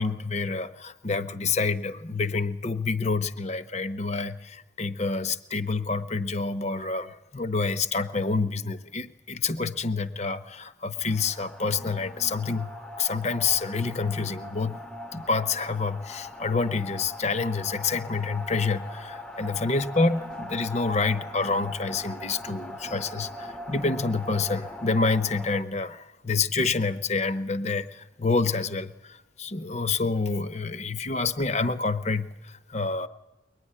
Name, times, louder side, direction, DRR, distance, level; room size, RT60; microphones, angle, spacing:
voice 1, 0.0-12.7 13.0-14.8 15.1-33.1, left 4 dB, 35° left, 11 dB, 0.8 m, -28 dB
sound 1, 11.0-25.6, left 1 dB, 5° left, 0.8 m, -40 dB
22.5 x 20.0 x 9.9 m, 1.0 s
head